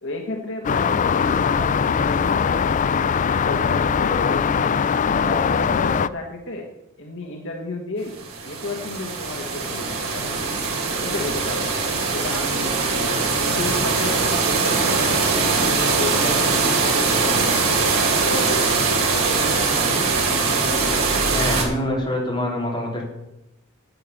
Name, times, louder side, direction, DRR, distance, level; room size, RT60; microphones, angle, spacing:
voice 1, 0.0-3.0 3.3-4.8 5.1-6.7 7.0-8.2 8.4-10.6 11.0-11.8 12.1-13.0 13.4-17.5 18.2-18.7 19.0-20.5, left 2 dB, 60° left, 1 dB, 1.5 m, -33 dB
sound 1, 0.6-6.1, left 6 dB, 35° left, 0.3 m, -21 dB
sound 2, 8.1-21.6, right 4 dB, 75° right, 3.3 m, -21 dB
voice 2, 21.3-23.0, left 1 dB, 20° left, -2 dB, 3.3 m, -25 dB
9.8 x 8.5 x 7.2 m, 0.92 s
head